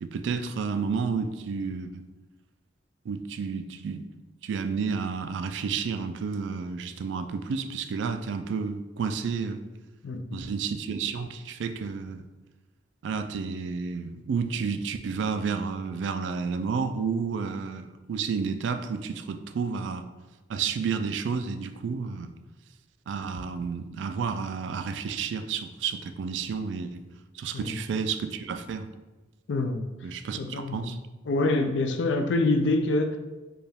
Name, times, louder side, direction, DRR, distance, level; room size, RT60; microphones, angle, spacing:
voice 1, 0.0-2.0 3.1-4.0 4.4-9.6 10.3-12.2 13.0-20.0 20.5-22.3 23.1-27.0 27.3-28.9 30.0-31.0, right 5 dB, 80° right, 9 dB, 0.3 m, -31 dB
voice 2, 10.0-10.4 27.5-27.8 29.5-29.9 30.4-31.0 31.3-33.2, left 2 dB, 80° left, 7 dB, 0.4 m, -26 dB
4.6 x 2.3 x 3.4 m, 1.2 s
head